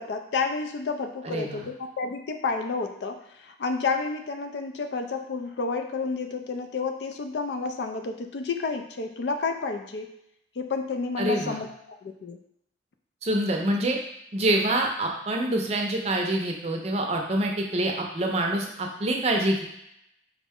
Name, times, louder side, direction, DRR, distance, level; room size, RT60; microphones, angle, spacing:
voice 1, 0.0-10.2 10.6-12.4, left 4 dB, 70° left, 6 dB, 0.4 m, -30 dB
voice 2, 1.2-1.7 11.2-11.6 13.2-14.0 14.3-19.6, right 1 dB, 35° right, 1 dB, 0.5 m, -26 dB
4.9 x 2.1 x 3.5 m, 0.78 s
head